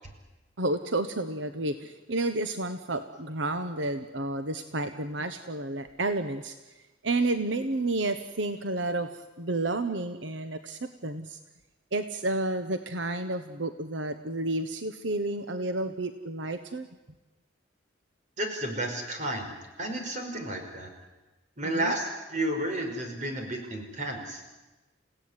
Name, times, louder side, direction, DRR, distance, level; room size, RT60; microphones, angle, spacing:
voice 1, 0.6-6.5 7.0-11.4 11.9-16.9 21.6-21.9, right 2 dB, 85° right, 9 dB, 1.2 m, -31 dB
voice 2, 18.4-20.9 21.6-24.4, right 1 dB, 40° right, 4 dB, 5.1 m, -32 dB
29.0 x 16.5 x 9.8 m, 1.1 s
head